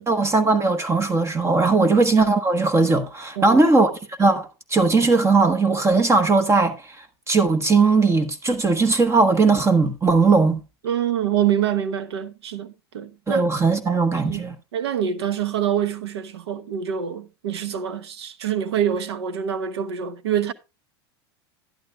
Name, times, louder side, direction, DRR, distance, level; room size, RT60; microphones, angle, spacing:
voice 1, 0.1-6.7 7.3-10.6 13.3-14.5, right 3 dB, 20° right, 1.2 m, -19 dB
voice 2, 10.8-13.4 14.2-14.4 14.7-20.5, right 9 dB, 80° right, 1.0 m, -26 dB
11.5 x 11.0 x 2.3 m
hypercardioid pair, 105°, 14 cm